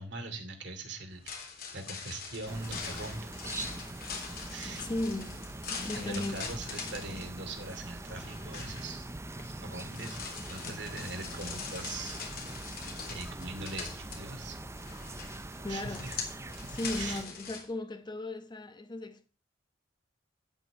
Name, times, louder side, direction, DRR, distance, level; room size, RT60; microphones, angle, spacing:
voice 1, 0.0-3.3 3.5-3.7 4.5-4.9 5.7-9.1 9.6-10.2 10.5-12.3 13.1-14.6 15.7-16.2 16.6-17.2, right 2 dB, 65° right, 2.7 m, -42 dB
sound 1, 1.1-17.6, left 5 dB, 55° left, 3.4 m, -43 dB
sound 2, 2.5-17.2, right 2 dB, 15° right, 0.5 m, -43 dB
voice 2, 4.7-5.4 5.7-6.4 15.6-16.1 16.7-19.3, left 1 dB, 25° left, 0.9 m, -36 dB
12.0 x 6.1 x 8.8 m
head